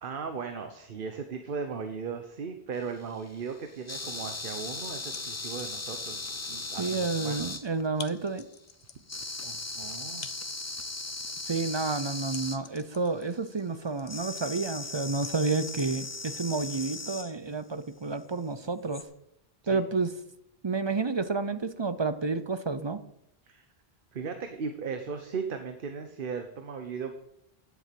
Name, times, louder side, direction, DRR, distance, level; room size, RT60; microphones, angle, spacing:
voice 1, 0.0-7.5 9.4-10.3 19.7-19.8 23.5-23.6 24.1-27.1, right 5 dB, 60° right, 7 dB, 1.0 m, -37 dB
sound 1, 2.8-8.0 9.1-12.6 14.1-17.3 18.9-19.0, left 3 dB, 20° left, 0.5 m, -38 dB
sound 2, 4.8-6.0 6.4-17.1, left 6 dB, 50° left, 0.8 m, -48 dB
voice 2, 6.8-8.4 11.5-19.0 19.7-20.1 20.6-23.0, right 4 dB, 35° right, 12 dB, 0.5 m, -30 dB
10.5 x 7.3 x 7.6 m, 0.80 s
omnidirectional pair, 1.0 m